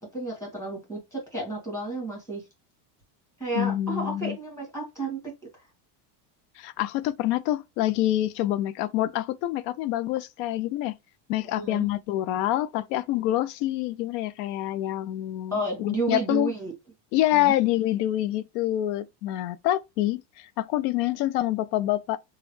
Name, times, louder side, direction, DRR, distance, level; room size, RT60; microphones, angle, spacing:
voice 1, 0.1-2.4 3.4-5.2 11.5-11.8 15.5-16.7 17.3-17.5, right 2 dB, 5° left, 1.5 m, -31 dB
voice 2, 3.5-4.4 6.6-10.9 11.3-16.5 17.1-22.2, left 14 dB, 75° left, 0.5 m, -26 dB
3.0 x 2.4 x 3.0 m
cardioid pair, 140°, 48 cm